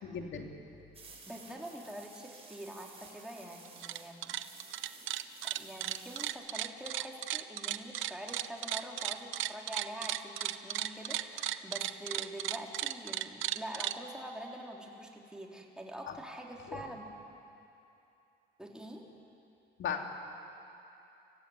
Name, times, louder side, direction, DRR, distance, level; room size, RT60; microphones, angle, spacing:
voice 1, 0.0-0.5 16.1-16.2 16.7-16.8 19.8-20.0, left 7 dB, 70° left, 2 dB, 2.9 m, -37 dB
sound 1, 0.9-6.3, right 3 dB, 30° right, 6.0 m, -54 dB
voice 2, 1.3-4.4 5.4-17.1 18.6-19.1, right 1 dB, 5° right, -1 dB, 3.7 m, -45 dB
sound 2, 3.7-4.0 4.2-14.0, right 12 dB, 80° right, 0.8 m, -35 dB
29.0 x 15.5 x 9.6 m, 2.8 s
cardioid pair, 90°, 20 cm